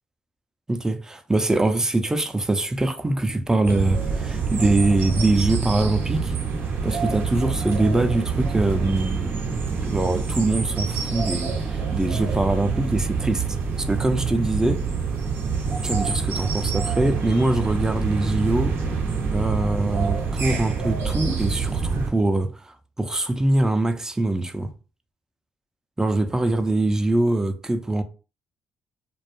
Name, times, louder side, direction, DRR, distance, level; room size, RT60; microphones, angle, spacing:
voice 1, 0.7-6.3 6.8-9.4 9.8-13.5 13.8-14.8 15.8-18.8 19.3-24.7 26.0-28.0, right 2 dB, 15° right, 0.5 m, -23 dB
sound 1, 3.6-22.1, right 5 dB, 70° right, 0.6 m, -26 dB
2.3 x 2.1 x 3.0 m
supercardioid pair, 55°, 4 cm